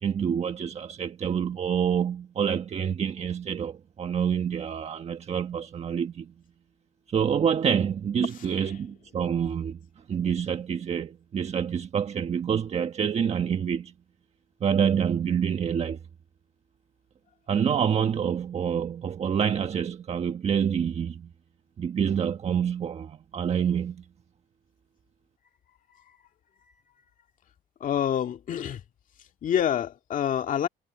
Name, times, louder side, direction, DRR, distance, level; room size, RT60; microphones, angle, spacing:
voice 1, 0.0-6.3 7.1-9.8 10.1-13.9 14.6-16.0 17.5-21.3 21.8-24.0, right 8 dB, 40° right, 1.3 m, -27 dB
voice 2, 8.4-8.7 25.9-26.2 26.7-26.8 27.8-28.8 29.2-30.7, left 9 dB, 50° left, 2.2 m, -28 dB
cardioid pair, 110°, 17 cm